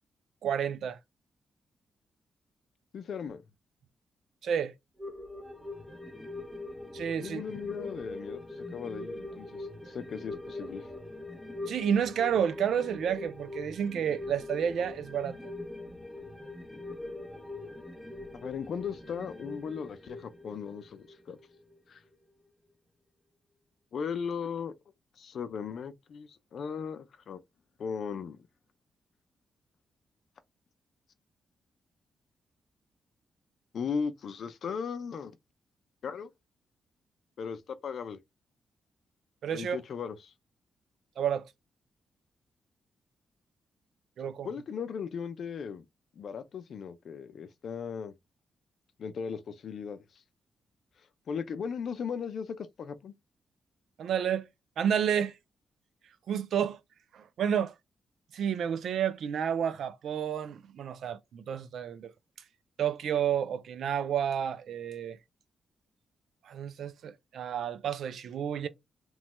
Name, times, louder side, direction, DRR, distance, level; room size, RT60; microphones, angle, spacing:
voice 1, 0.4-1.0 4.4-4.7 6.9-7.4 11.7-15.4 39.4-39.8 41.2-41.5 44.2-44.5 54.0-54.5 54.8-55.3 56.3-56.8 57.1-57.8 58.3-62.1 62.8-65.2 66.4-68.7, right 8 dB, 80° right, 0.4 m, -30 dB
voice 2, 2.9-3.4 7.2-10.8 18.3-21.4 21.9-22.0 23.9-24.7 25.2-27.4 27.8-28.4 33.7-35.3 36.0-36.3 37.4-38.2 39.5-40.3 44.4-45.9 46.2-48.1 49.0-50.0 51.3-53.1, left 6 dB, 65° left, 0.4 m, -37 dB
sound 1, 5.0-21.8 22.1-22.2, left 2 dB, 10° right, 0.7 m, -42 dB
3.0 x 2.1 x 3.0 m
cardioid pair, 85°, 0 cm